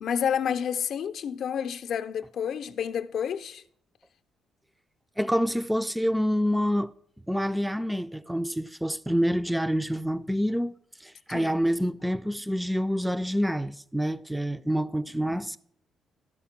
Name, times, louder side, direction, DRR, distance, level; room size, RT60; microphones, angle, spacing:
voice 1, 0.0-3.6 11.3-11.5, left 8 dB, 65° left, 0.5 m, -29 dB
voice 2, 5.2-6.9 7.3-15.6, equal, 5° right, 0.3 m, -27 dB
12.0 x 4.3 x 5.8 m
cardioid pair, 90°, 0 cm